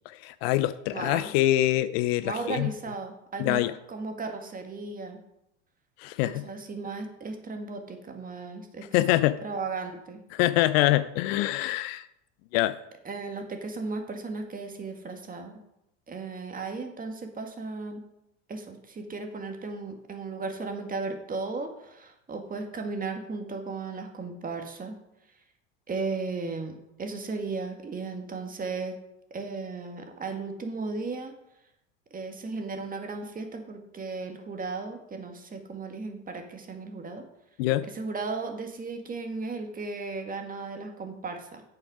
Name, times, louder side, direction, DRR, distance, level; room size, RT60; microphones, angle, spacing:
voice 1, 0.1-2.7 3.4-3.7 6.0-6.5 8.9-9.4 10.3-12.1 12.5-12.8 37.6-37.9, left 15 dB, 55° left, 14 dB, 0.6 m, -25 dB
voice 2, 0.9-1.3 2.2-5.2 6.2-8.9 9.4-10.2 13.1-15.6 16.1-18.0 18.5-25.0 25.9-26.7 27.0-29.0 29.3-31.3 32.1-37.2 37.8-41.6, right 3 dB, 25° right, 5 dB, 1.9 m, -35 dB
8.6 x 8.1 x 4.9 m, 0.83 s
hypercardioid pair, 80°, 37 cm